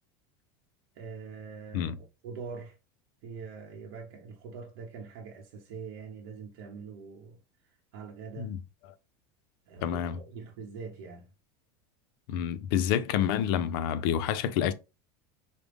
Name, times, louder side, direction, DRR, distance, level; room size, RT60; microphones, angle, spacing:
voice 1, 1.0-2.8 3.2-7.4 7.9-8.5 9.7-11.3, right 5 dB, 65° right, 0.8 m, -43 dB
voice 2, 9.8-10.2 12.3-14.7, left 9 dB, 60° left, 0.5 m, -28 dB
4.9 x 2.1 x 3.4 m
supercardioid pair, 150°, 13 cm